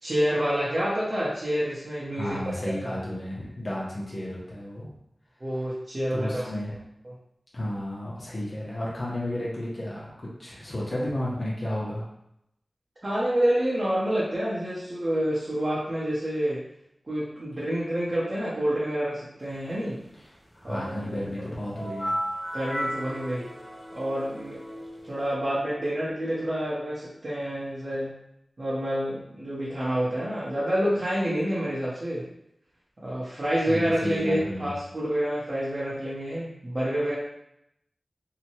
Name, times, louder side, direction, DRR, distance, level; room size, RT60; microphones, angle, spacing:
voice 1, 0.0-2.5 2.8-3.0 5.4-6.5 7.0-7.1 13.0-16.6 17.1-20.0 20.6-21.2 22.5-23.5 23.9-24.6 25.0-28.1 28.6-32.3 33.0-37.2, equal, 55° right, -9 dB, 0.8 m, -28 dB
voice 2, 2.1-4.9 6.1-6.8 7.5-12.1 20.5-22.2 33.2-33.4 33.7-34.7, left 1 dB, 60° left, -6 dB, 0.8 m, -32 dB
sound 1, 21.7-25.3, equal, 15° left, 0.5 m, -34 dB
2.8 x 2.2 x 2.9 m, 0.78 s
wide cardioid pair, 45°, 0 cm